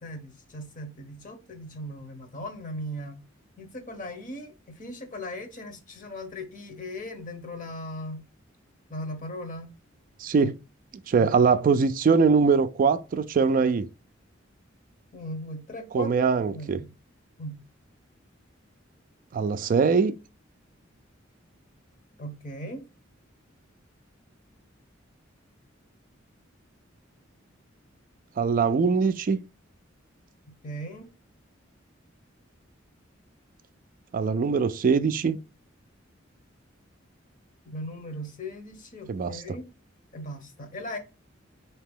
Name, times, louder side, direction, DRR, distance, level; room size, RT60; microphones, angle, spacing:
voice 1, 0.0-3.2 3.6-8.2 8.9-9.7 10.4-10.5 11.2-11.3 15.1-16.9 17.4-17.6 22.2-22.8 30.6-31.1 37.7-39.6 40.1-41.0, equal, 40° left, 1.0 m, -38 dB
voice 2, 10.2-10.5 11.1-13.9 15.9-16.8 19.3-20.1 28.4-29.4 34.1-35.4 39.1-39.6, right 5 dB, 45° right, 0.3 m, -22 dB
4.2 x 2.8 x 3.5 m
head